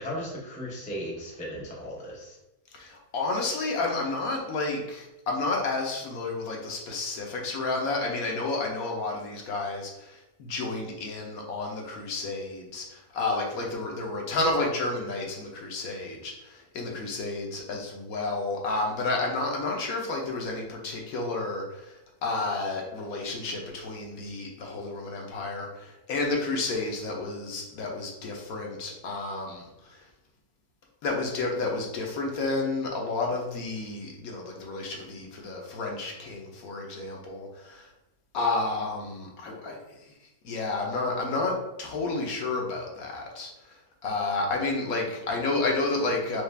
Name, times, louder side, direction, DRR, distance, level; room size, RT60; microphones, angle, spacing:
voice 1, 0.0-2.4, equal, 10° left, -3 dB, 0.4 m, -36 dB
voice 2, 2.7-30.0 31.0-37.9 38.3-40.1 40.4-46.4, left 3 dB, 70° left, 0 dB, 1.2 m, -31 dB
4.8 x 2.4 x 3.3 m, 0.92 s
omnidirectional pair, 1.6 m